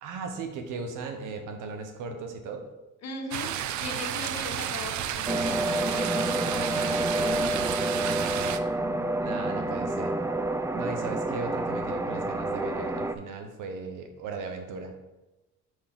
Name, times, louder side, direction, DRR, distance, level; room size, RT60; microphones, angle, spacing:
voice 1, 0.0-2.6 9.2-10.2 10.7-14.9, right 4 dB, 90° right, 5 dB, 1.0 m, -37 dB
voice 2, 3.0-7.8, left 4 dB, 60° left, 3 dB, 1.2 m, -40 dB
sound 1, 3.3-8.6, right 11 dB, 70° right, 0.5 m, -32 dB
sound 2, 5.3-13.1, right 1 dB, 10° right, 0.4 m, -28 dB
4.9 x 4.7 x 5.9 m, 1.1 s
cardioid pair, 90°, 30 cm